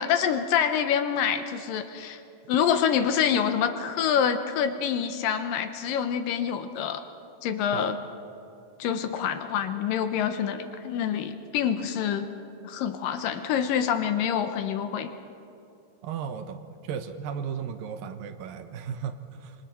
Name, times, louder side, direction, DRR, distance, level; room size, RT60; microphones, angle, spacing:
voice 1, 0.0-2.2 2.5-7.0 7.4-8.0 8.8-12.3 12.6-15.1, left 8 dB, 75° left, 8 dB, 2.4 m, -26 dB
voice 2, 16.0-19.6, right 7 dB, 75° right, 9 dB, 2.5 m, -35 dB
26.0 x 25.0 x 4.4 m, 2.8 s
omnidirectional pair, 4.3 m